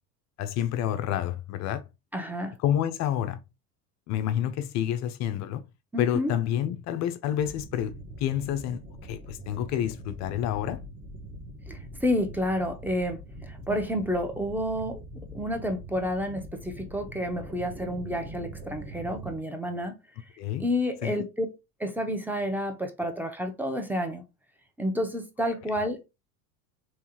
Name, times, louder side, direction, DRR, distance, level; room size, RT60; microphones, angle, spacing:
voice 1, 0.4-1.8 2.6-3.4 4.1-5.6 6.0-10.8 13.7-13.8 20.4-20.7 21.0-21.2, left 10 dB, 40° left, 0.4 m, -29 dB
voice 2, 2.1-2.5 5.9-6.3 11.7-15.0 15.3-20.0 20.6-21.5 21.8-24.2 24.8-26.0, equal, 5° right, 0.7 m, -30 dB
sound 1, 7.4-19.4, right 1 dB, 25° right, 1.1 m, -43 dB
3.5 x 3.0 x 2.8 m
hypercardioid pair, 85°, 47 cm